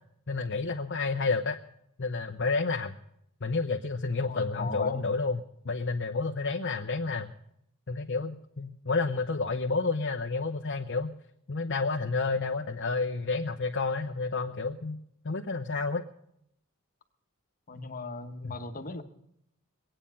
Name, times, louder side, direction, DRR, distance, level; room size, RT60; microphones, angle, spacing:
voice 1, 0.3-1.6 2.0-3.0 3.4-7.3 7.9-11.1 11.5-15.0 15.2-16.0 18.4-18.6, left 3 dB, 55° left, 3 dB, 0.8 m, -30 dB
voice 2, 4.3-5.1 17.7-19.0, left 3 dB, 40° left, 5 dB, 1.2 m, -37 dB
22.5 x 8.9 x 5.6 m, 0.75 s
head